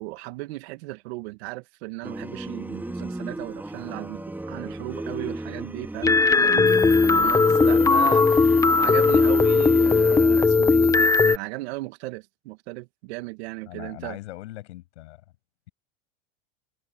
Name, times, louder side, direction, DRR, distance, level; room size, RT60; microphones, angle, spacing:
voice 1, 0.0-14.2, right 22 dB, 65° right, 2.2 m, -36 dB
sound 1, 2.0-10.6, right 2 dB, 5° right, 4.1 m, -35 dB
sound 2, 6.0-11.4, left 4 dB, 10° left, 0.8 m, -18 dB
voice 2, 13.7-15.2, left 17 dB, 75° left, 6.8 m, -40 dB
supercardioid pair, 125°, 35 cm